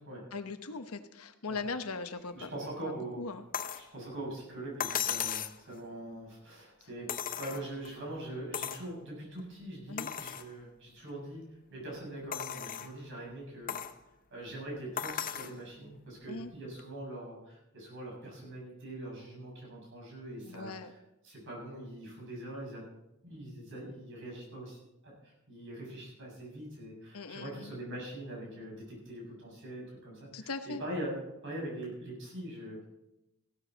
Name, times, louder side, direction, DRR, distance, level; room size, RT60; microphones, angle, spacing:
voice 1, 0.3-2.5 2.8-3.4 9.9-10.1 16.3-16.5 20.4-20.9 27.1-27.7 30.3-30.8, left 4 dB, 80° left, 8 dB, 1.0 m, -39 dB
voice 2, 2.3-3.2 3.7-13.8 14.3-20.8 21.2-22.8 23.2-24.8 25.0-32.8, right 1 dB, 60° right, -3 dB, 6.5 m, -43 dB
sound 1, 3.5-3.9 4.8-5.6 7.1-7.9 8.5-8.9 9.4-9.5 10.0-10.5 11.1-11.2 12.3-12.9 13.7-14.0 15.0-15.6 16.8-16.9, left 9 dB, 40° left, 0.7 m, -36 dB
16.0 x 12.5 x 4.0 m, 0.91 s
head